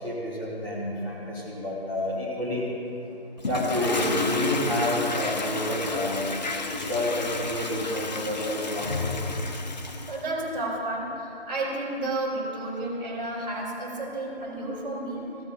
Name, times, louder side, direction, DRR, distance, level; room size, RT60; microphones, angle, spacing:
voice 1, 0.0-2.6 3.5-6.2 6.7-9.1 10.1-10.2, left 1 dB, 5° left, -9 dB, 1.2 m, -29 dB
Toilet flush, 3.4-10.2, left 3 dB, 45° left, 0.7 m, -31 dB
voice 2, 10.1-15.3, right 2 dB, 15° right, -13 dB, 1.6 m, -31 dB
15.5 x 8.1 x 2.6 m, 2.7 s
figure-of-eight pair, 155°, 32 cm